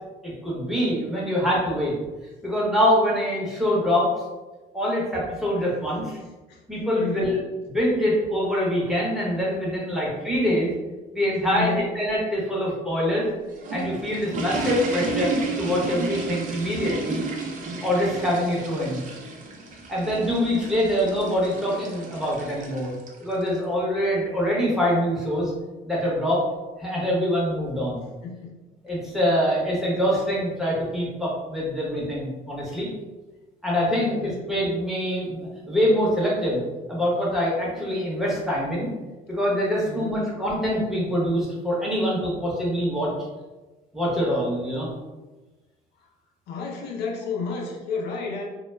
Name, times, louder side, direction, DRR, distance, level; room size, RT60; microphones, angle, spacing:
voice 1, 0.2-1.9 2.4-4.1 4.7-6.2 6.7-7.4 7.7-10.7 11.1-13.3 13.7-17.2 17.8-19.0 19.9-22.9 23.2-25.5 25.8-26.4 26.8-28.0 28.8-32.9 33.6-38.9 39.3-43.1 43.9-44.9, equal, ahead, -6 dB, 0.9 m, -24 dB
voice 2, 7.0-7.4 9.9-10.0 11.5-11.9 28.2-28.6 34.0-34.5 39.8-40.2 46.0-46.1 46.5-48.4, left 4 dB, 75° left, 0 dB, 0.5 m, -32 dB
sound 1, 13.3-23.6, right 3 dB, 50° right, 0.5 m, -32 dB
2.2 x 2.0 x 3.1 m, 1.2 s
cardioid pair, 110°, 17 cm